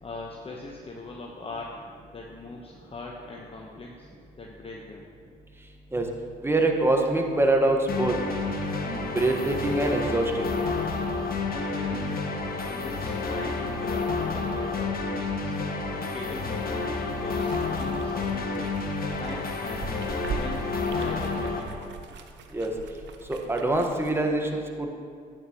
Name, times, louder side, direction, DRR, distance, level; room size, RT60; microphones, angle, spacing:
voice 1, 0.0-1.8 2.1-4.1 4.4-5.1 11.5-12.2 12.6-15.5 15.9-18.7 19.2-19.9 20.3-21.9, left 3 dB, 30° left, -1 dB, 1.1 m, -40 dB
voice 2, 6.4-8.1 8.9-10.5 22.5-22.7 23.3-24.9, right 2 dB, 10° right, 2 dB, 1.4 m, -24 dB
sound 1, 7.9-21.6, left 3 dB, 45° left, 1.3 m, -30 dB
sound 2, 17.3-24.2, right 5 dB, 60° right, 0.8 m, -41 dB
12.0 x 8.8 x 3.0 m, 2.2 s
hypercardioid pair, 55°, 21 cm